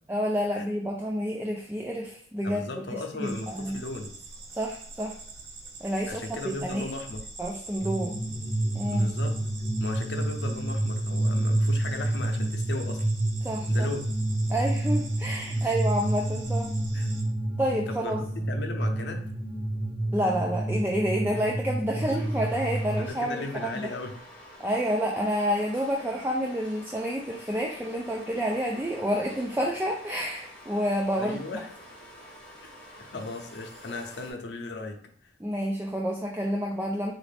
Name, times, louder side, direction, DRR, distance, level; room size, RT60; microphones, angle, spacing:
voice 1, 0.1-3.8 4.5-5.2 5.8-6.2 6.6-6.9 7.4-8.2 8.7-9.1 13.4-13.9 14.5-16.7 17.6-18.2 20.1-23.9 24.6-31.4 35.4-37.1, equal, 10° right, 0 dB, 0.3 m, -29 dB
voice 2, 2.4-4.1 6.0-7.3 8.9-9.4 9.8-13.1 13.7-14.1 15.5-15.7 16.9-17.1 17.9-19.2 22.0-22.2 22.9-24.1 31.2-31.7 33.0-35.0 35.2-35.3, left 2 dB, 65° left, 3 dB, 0.6 m, -36 dB
sound 1, 3.2-17.2, right 3 dB, 85° right, 0.8 m, -45 dB
sound 2, 7.8-23.1, right 1 dB, 30° left, 0.9 m, -29 dB
sound 3, 22.1-34.3, left 1 dB, 5° left, 0.9 m, -48 dB
4.0 x 2.5 x 3.3 m, 0.62 s
head